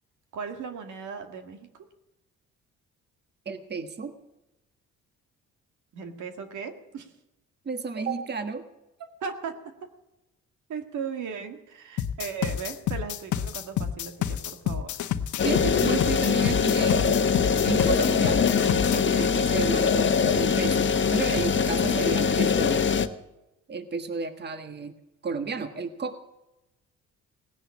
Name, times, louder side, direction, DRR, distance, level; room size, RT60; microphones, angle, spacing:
voice 1, 0.3-1.7 5.9-7.1 9.0-9.6 10.7-15.0, right 6 dB, 75° right, 6 dB, 1.9 m, -37 dB
voice 2, 3.4-4.1 7.6-8.7 15.4-17.4 17.6-18.4 18.9-22.9 23.7-24.9 25.2-26.2, right 4 dB, 35° right, 8 dB, 1.4 m, -32 dB
sound 1, 12.0-19.0, left 10 dB, 70° left, 1.0 m, -29 dB
sound 2, 15.4-23.1, left 6 dB, 40° left, 1.1 m, -23 dB
18.0 x 10.0 x 7.2 m, 0.96 s
cardioid pair, 90°, 30 cm